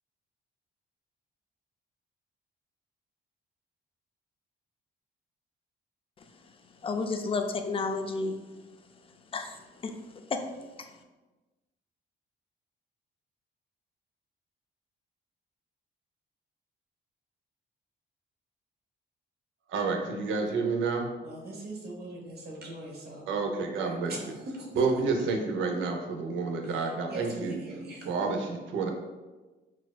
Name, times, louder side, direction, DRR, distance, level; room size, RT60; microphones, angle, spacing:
voice 1, 6.8-8.4 9.3-9.9 10.3-10.4 10.8-10.9, left 4 dB, 30° left, 0.3 m, -31 dB
voice 2, 19.7-21.1 23.3-24.3 24.7-27.6 28.0-28.9, right 4 dB, 80° right, 0.5 m, -29 dB
voice 3, 21.2-23.3 23.8-24.2 24.6-24.7 27.1-28.1, right 2 dB, 55° right, 0.9 m, -41 dB
4.1 x 2.4 x 2.2 m
cardioid pair, 90°, 20 cm